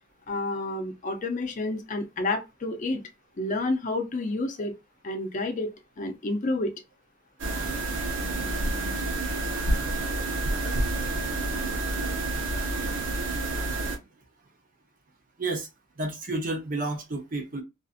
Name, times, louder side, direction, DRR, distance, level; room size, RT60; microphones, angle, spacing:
voice 1, 0.3-3.0 3.4-4.7 5.0-6.7, left 2 dB, 40° left, 0.5 m, -29 dB
sound 1, 7.4-14.0, right 2 dB, 75° right, 0.9 m, -29 dB
voice 2, 16.0-17.6, right 2 dB, 45° right, 0.6 m, -30 dB
2.5 x 2.5 x 2.4 m
head